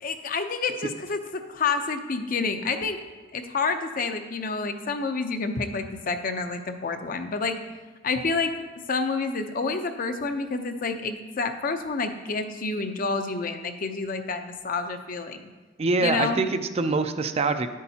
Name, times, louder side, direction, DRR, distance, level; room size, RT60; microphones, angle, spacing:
voice 1, 0.0-3.0 3.3-7.6 8.0-8.5 8.9-15.5 16.0-16.4, left 4 dB, 50° left, 7 dB, 0.6 m, -28 dB
voice 2, 15.8-17.7, right 3 dB, 35° right, 9 dB, 0.4 m, -24 dB
10.5 x 8.4 x 2.8 m, 1.3 s
head